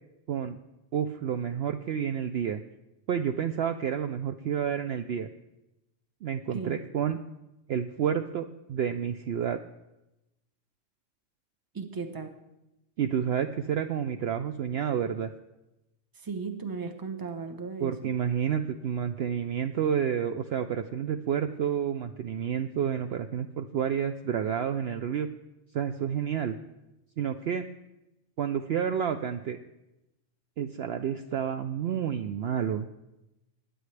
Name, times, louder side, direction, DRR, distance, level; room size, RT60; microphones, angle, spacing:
voice 1, 0.9-2.6 3.1-5.3 6.2-7.2 7.7-9.6 13.0-15.3 17.8-25.3 25.7-26.6 27.2-27.6 28.4-29.6 30.6-32.9, right 8 dB, 65° right, 8 dB, 0.7 m, -29 dB
voice 2, 6.5-6.8 11.7-12.3 16.1-18.1, right 5 dB, 20° right, 6 dB, 0.8 m, -36 dB
21.0 x 9.5 x 3.3 m, 0.94 s
omnidirectional pair, 1.3 m